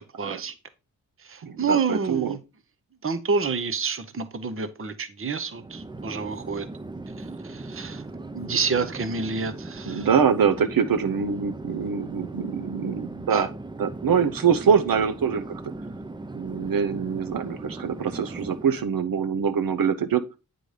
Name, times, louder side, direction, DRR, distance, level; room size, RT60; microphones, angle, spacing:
voice 1, 0.2-0.5 1.3-2.4 3.0-6.7 7.4-8.0 8.3-10.1 13.3-13.4, right 5 dB, 35° right, 0.8 m, -28 dB
voice 2, 1.4-2.4 9.8-13.5 13.8-15.6 16.3-20.2, right 7 dB, 70° right, 0.8 m, -24 dB
Chatter / Fixed-wing aircraft airplane, 5.5-18.9, right 2 dB, 15° right, 0.4 m, -38 dB
9.4 x 3.9 x 5.0 m
wide cardioid pair, 165°, 36 cm